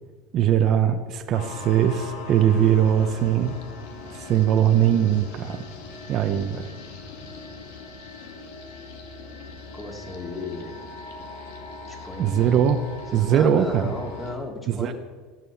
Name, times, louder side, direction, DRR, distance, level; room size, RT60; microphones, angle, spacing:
voice 1, 0.3-3.5 4.1-5.6 6.1-6.7 12.2-12.8 13.1-13.9 14.7-14.9, right 9 dB, 45° right, 7 dB, 0.9 m, -21 dB
sound 1, 1.3-14.4, left 3 dB, 80° left, 2.4 m, -40 dB
voice 2, 9.7-10.7 11.9-12.4 13.1-14.9, left 2 dB, 20° left, 0 dB, 3.0 m, -35 dB
16.0 x 7.6 x 7.2 m, 1.4 s
supercardioid pair, 110°, 0 cm